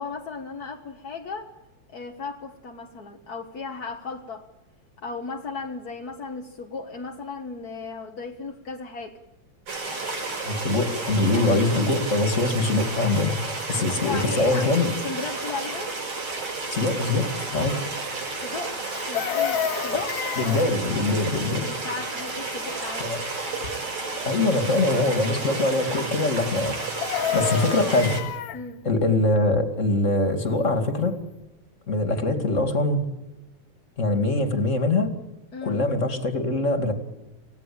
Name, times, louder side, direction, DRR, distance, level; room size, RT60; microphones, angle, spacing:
voice 1, 0.0-1.5 1.9-4.5 5.0-9.2 13.7-15.9 18.4-18.8 19.1-20.1 21.6-23.1 27.3-27.5 28.5-28.8 35.5-35.8, left 4 dB, 45° left, 2 dB, 1.3 m, -35 dB
sound 1, 9.7-28.2, right 3 dB, 50° right, 7.1 m, -32 dB
voice 2, 10.5-14.9 16.7-17.8 20.4-21.7 23.0-23.2 24.2-27.0 27.3-28.2 28.8-31.2 31.9-33.0 34.0-35.1 35.6-36.9, left 2 dB, 25° left, 7 dB, 2.4 m, -23 dB
Chicken rooster, 18.9-20.7 26.8-28.6 30.8-30.9 31.2-31.4, left 9 dB, 70° left, 2.2 m, -29 dB
28.5 x 16.5 x 8.7 m, 1.0 s
omnidirectional pair, 3.4 m